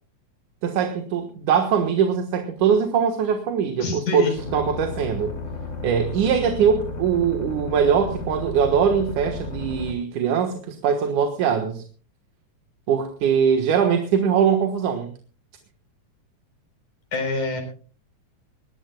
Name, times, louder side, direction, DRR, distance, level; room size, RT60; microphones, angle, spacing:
voice 1, 0.6-5.3 5.8-11.8 12.9-15.1, right 7 dB, 85° right, 5 dB, 2.9 m, -22 dB
voice 2, 3.8-4.4 17.1-17.6, left 4 dB, 80° left, 4 dB, 5.7 m, -26 dB
sound 1, 4.3-9.9, left 2 dB, 40° left, 3.3 m, -33 dB
22.0 x 18.5 x 2.3 m, 0.40 s
omnidirectional pair, 3.5 m